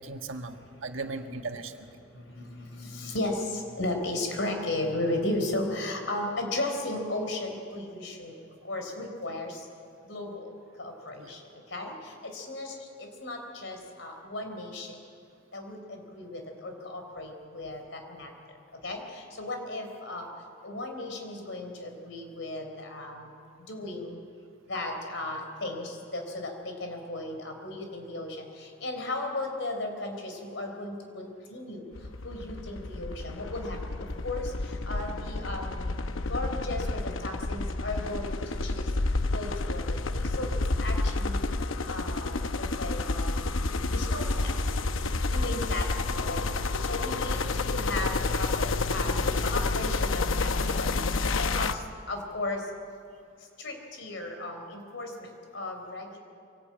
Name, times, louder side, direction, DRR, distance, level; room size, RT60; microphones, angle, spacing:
voice 1, 0.0-1.7 11.2-11.3 45.4-45.5, right 3 dB, 85° right, 5 dB, 1.6 m, -38 dB
voice 2, 2.1-8.4 8.6-9.7 10.1-10.5 10.8-11.4 11.7-15.0 15.5-18.3 18.8-20.3 20.6-23.3 23.7-24.2 24.7-31.9 32.2-35.9 36.3-38.9 39.3-41.5 41.9-44.5 45.3-46.5 46.8-52.6 53.6-56.2, left 2 dB, 70° left, 4 dB, 4.2 m, -35 dB
sound 1, 31.9-51.7, left 3 dB, 85° left, 0.9 m, -29 dB
24.0 x 18.5 x 8.8 m, 2.5 s
head